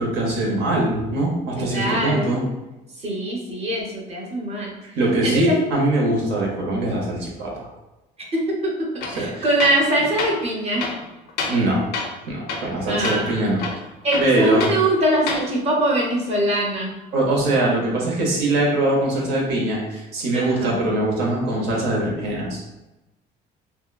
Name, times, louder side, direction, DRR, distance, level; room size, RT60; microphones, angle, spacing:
voice 1, 0.0-2.4 4.8-7.7 9.2-9.5 11.5-11.8 12.3-13.6 14.2-14.7 17.1-22.8, right 2 dB, 85° right, -2 dB, 0.8 m, -22 dB
voice 2, 1.6-2.3 3.0-4.7 5.2-5.6 6.2-6.4 8.3-8.4 8.9-10.9 12.9-13.4 14.0-16.9 20.3-20.8, right 1 dB, 40° right, -2 dB, 0.7 m, -22 dB
Tools, 9.0-9.2 9.6-9.9 10.2-10.4 10.8-11.7 11.9-12.2 12.5-12.8 13.0-13.2 13.6-14.8 15.2-15.5, left 4 dB, 75° left, 0.5 m, -28 dB
2.8 x 2.2 x 2.3 m, 1.0 s
cardioid pair, 110°, 17 cm